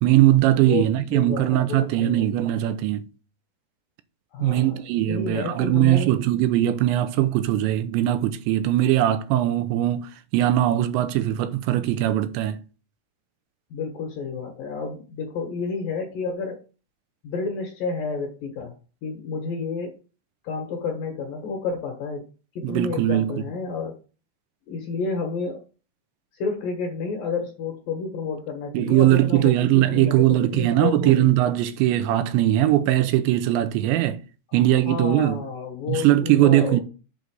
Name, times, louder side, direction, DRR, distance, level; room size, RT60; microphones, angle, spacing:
voice 1, 0.0-3.1 4.4-12.6 22.6-23.3 28.7-34.2 34.5-35.4 35.9-36.8, right 14 dB, 80° right, 3.0 m, -20 dB
voice 2, 0.6-2.6 4.3-6.2 13.7-16.6 17.2-18.7 19.0-20.0 20.4-22.3 22.6-24.0 24.7-25.6 26.3-31.3 34.5-36.8, left 5 dB, 65° left, 2.6 m, -30 dB
8.0 x 4.0 x 6.3 m
omnidirectional pair, 5.3 m